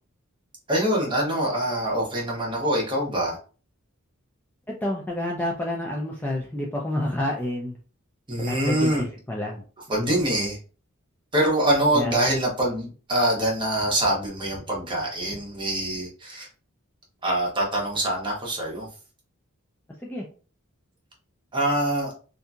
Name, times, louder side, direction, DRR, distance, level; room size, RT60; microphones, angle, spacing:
voice 1, 0.7-3.4 8.3-9.0 9.9-10.6 11.3-16.5 17.2-18.9 21.5-22.1, right 1 dB, 20° right, -2 dB, 0.9 m, -24 dB
voice 2, 4.8-7.7 8.5-9.6 11.9-12.1 20.0-20.2, left 1 dB, 10° left, -2 dB, 0.4 m, -29 dB
2.7 x 2.5 x 2.3 m, 0.38 s
head